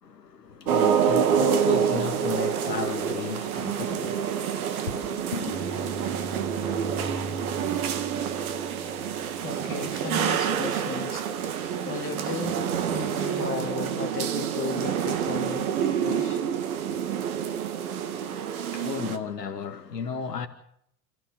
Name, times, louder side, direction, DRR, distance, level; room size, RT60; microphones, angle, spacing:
voice 1, 0.0-5.6 18.1-20.5, left 6 dB, 70° left, 2.1 m, -34 dB
sound 1, 0.7-19.2, right 8 dB, 60° right, 2.4 m, -27 dB
sound 2, 5.5-11.0, left 1 dB, 5° right, 7.1 m, -41 dB
voice 2, 9.4-16.4, left 5 dB, 25° left, 3.9 m, -35 dB
29.5 x 15.0 x 6.4 m
figure-of-eight pair, 80°, 50 cm